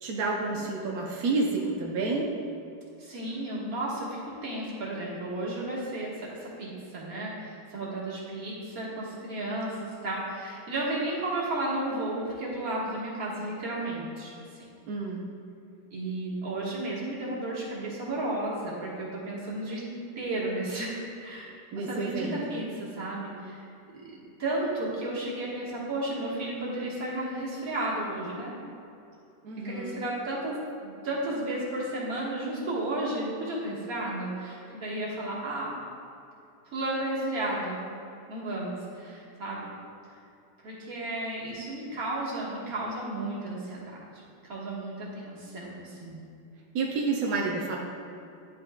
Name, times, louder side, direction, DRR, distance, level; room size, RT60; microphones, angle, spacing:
voice 1, 0.0-2.3 14.9-15.2 21.7-22.6 29.4-30.0 46.7-47.8, right 3 dB, 70° right, -1 dB, 0.8 m, -30 dB
voice 2, 3.0-14.3 15.9-19.8 20.1-23.7 24.1-28.5 29.6-35.7 36.7-37.8 38.3-39.7 40.6-44.0 44.4-46.2, right 1 dB, 45° right, -6 dB, 1.7 m, -33 dB
10.5 x 5.7 x 2.2 m, 2.6 s
omnidirectional pair, 2.3 m